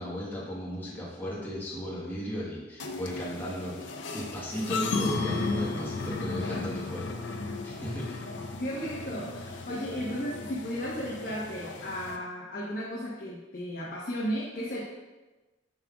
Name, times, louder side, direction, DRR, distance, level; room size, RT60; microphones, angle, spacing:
voice 1, 0.0-3.8 4.1-8.2, equal, 10° left, -7 dB, 1.3 m, -36 dB
sound 1, 2.8-12.2, left 3 dB, 85° left, 0.6 m, -35 dB
voice 2, 8.6-14.8, equal, 50° left, -6 dB, 1.1 m, -34 dB
7.5 x 6.2 x 2.4 m, 1.1 s
head